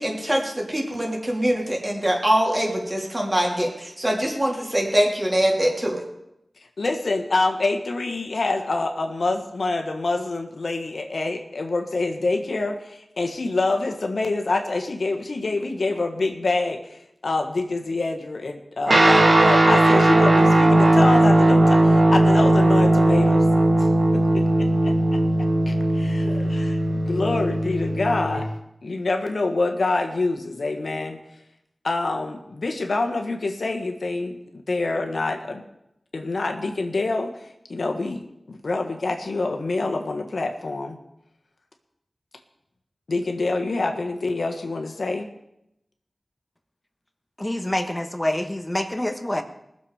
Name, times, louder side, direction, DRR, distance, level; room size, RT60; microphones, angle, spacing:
voice 1, 0.0-6.0, equal, 25° right, -1 dB, 3.4 m, -23 dB
voice 2, 6.8-23.4 23.8-23.9 24.1-24.2 24.6-24.9 25.7-28.5 28.8-31.2 31.8-34.4 34.7-35.6 36.1-37.3 37.7-41.0 43.1-45.3, left 3 dB, 80° left, 4 dB, 1.5 m, -26 dB
Guitar, 18.9-28.5, right 1 dB, 65° right, 2.2 m, -18 dB
voice 3, 47.4-49.4, left 1 dB, 20° left, 6 dB, 1.4 m, -26 dB
20.5 x 7.1 x 5.1 m, 0.83 s
wide cardioid pair, 55°, 0 cm